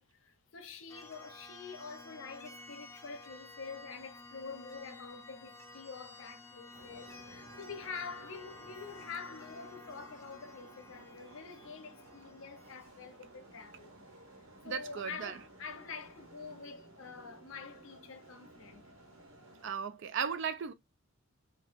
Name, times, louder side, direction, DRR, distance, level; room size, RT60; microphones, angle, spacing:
voice 1, 0.0-13.9 14.4-18.9, left 5 dB, 70° left, 0.6 m, -47 dB
sound 1, 0.9-12.9, left 2 dB, 15° left, 0.5 m, -53 dB
sound 2, 6.7-19.7, right 2 dB, 85° right, 1.1 m, -56 dB
voice 2, 14.6-15.4 19.6-20.7, right 7 dB, 60° right, 0.4 m, -36 dB
2.7 x 2.3 x 3.4 m
head